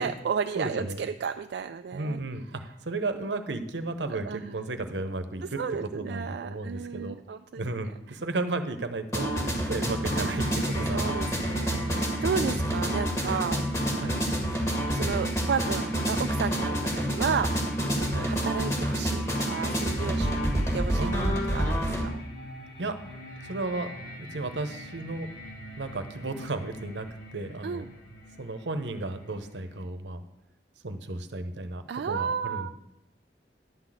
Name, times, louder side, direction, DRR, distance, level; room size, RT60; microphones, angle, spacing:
voice 1, 0.0-2.2 4.2-4.6 5.4-7.6 8.1-8.2 9.1-13.6 14.9-22.2 27.6-27.9 31.9-32.7, right 6 dB, 65° right, 7 dB, 0.3 m, -33 dB
voice 2, 0.5-1.0 1.9-2.4 2.8-5.6 5.9-7.2 7.6-12.6 14.0-14.2 18.1-18.3 21.0-21.4 22.8-23.0 23.4-23.9 24.2-25.3 25.8-27.1 27.3-27.9 28.4-30.2 30.8-32.7, right 2 dB, 85° right, 9 dB, 0.9 m, -34 dB
sound 1, 9.1-22.1, equal, 20° left, 1.7 m, -28 dB
sound 2, 10.1-29.8, left 1 dB, 80° left, 2.1 m, -44 dB
11.0 x 4.0 x 7.6 m, 0.86 s
head